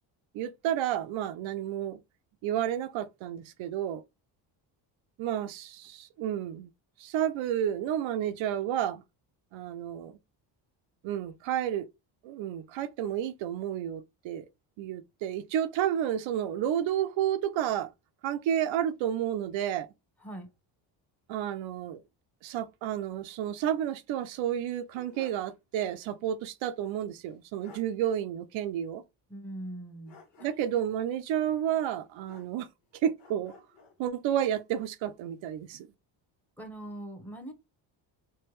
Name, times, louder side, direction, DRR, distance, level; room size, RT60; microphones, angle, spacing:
voice 1, 0.3-2.0 2.4-4.0 5.2-6.7 7.0-9.0 9.5-10.1 11.0-11.9 12.2-14.5 14.8-17.9 18.2-19.9 21.3-22.0 22.4-29.0 30.4-32.7 33.0-33.5 34.0-35.9, right 10 dB, 75° right, 0.5 m, -31 dB
sound 1, 24.5-25.5 25.9-26.0 27.2-27.3 27.6-27.9 30.1-30.8 32.2-32.8 33.2-34.0, left 5 dB, 75° left, 1.1 m, -54 dB
voice 2, 29.3-30.2 36.6-37.5, right 1 dB, 5° left, 0.9 m, -41 dB
3.4 x 2.2 x 3.1 m
cardioid pair, 90°, 47 cm